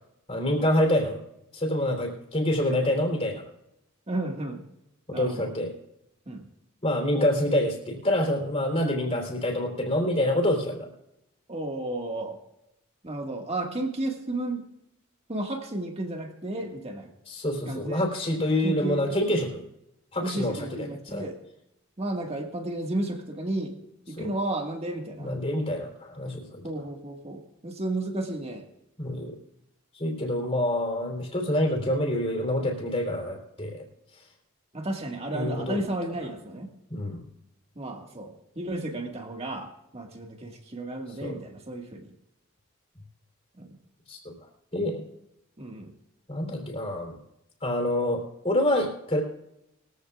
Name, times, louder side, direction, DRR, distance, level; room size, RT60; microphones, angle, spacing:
voice 1, 0.3-1.2 1.5-3.4 5.1-5.7 6.8-10.9 17.3-19.6 20.1-21.2 22.3-22.4 24.2-24.3 25.2-26.6 29.0-29.4 29.9-33.9 35.3-35.8 36.9-37.3 41.2-41.4 44.1-44.3 44.7-45.0 46.3-47.1 47.6-49.2, left 1 dB, 30° left, 2 dB, 3.6 m, -27 dB
voice 2, 4.1-4.6 5.1-5.5 6.3-6.5 11.5-12.4 13.0-14.7 15.3-17.1 17.7-18.1 18.4-19.1 20.2-21.4 22.0-23.8 24.1-25.3 26.6-28.6 34.7-36.7 37.8-42.1 43.6-43.7 45.6-45.9, right 1 dB, 30° right, 3 dB, 1.9 m, -33 dB
21.5 x 15.0 x 2.5 m, 0.85 s
head